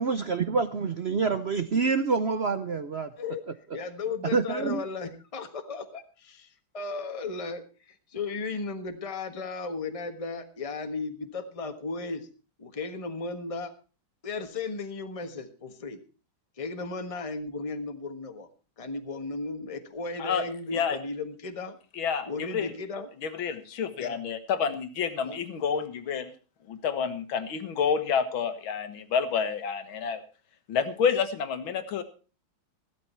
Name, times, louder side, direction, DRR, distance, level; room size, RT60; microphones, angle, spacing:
voice 1, 0.0-3.1 4.3-4.8, right 4 dB, 70° right, 10 dB, 0.6 m, -27 dB
voice 2, 3.7-12.3 12.6-13.7 14.2-16.0 16.6-18.5 18.8-21.8 22.3-23.1 24.0-24.2 25.2-25.4, left 3 dB, 20° left, 6 dB, 1.2 m, -35 dB
voice 3, 22.0-22.7 23.2-26.3 26.7-30.2 30.7-32.0, left 6 dB, 85° left, 10 dB, 2.2 m, -29 dB
15.0 x 12.0 x 4.4 m, 0.35 s
omnidirectional pair, 2.2 m